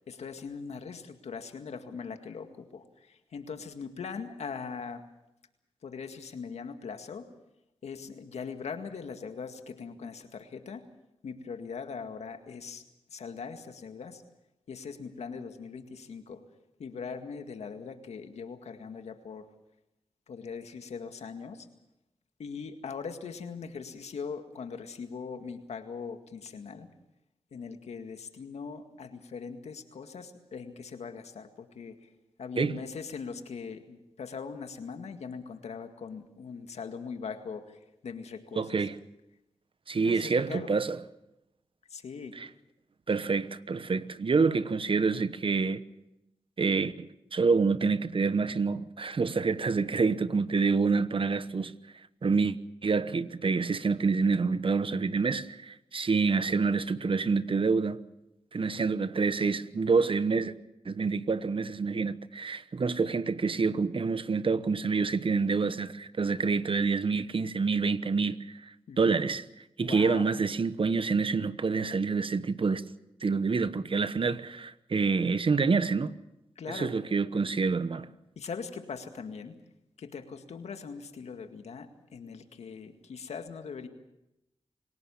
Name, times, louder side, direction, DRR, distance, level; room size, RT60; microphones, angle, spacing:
voice 1, 0.1-5.0 5.8-7.3 7.8-10.8 11.2-12.8 13.1-14.2 14.7-16.4 16.8-19.5 20.3-21.7 22.4-26.9 27.5-32.1 32.4-38.8 40.0-40.7 41.9-42.4 68.9-69.2 69.8-70.3 76.6-76.9 78.4-79.6 80.0-83.9, left 5 dB, 85° left, 2.0 m, -41 dB
voice 2, 38.6-39.0 39.9-41.0 42.3-42.5 43.1-45.8 46.6-51.7 52.2-58.0 58.5-60.5 60.8-72.8 73.2-76.1 76.7-78.1, right 4 dB, 55° right, 1.1 m, -27 dB
27.5 x 17.5 x 7.2 m
cardioid pair, 50°, 11 cm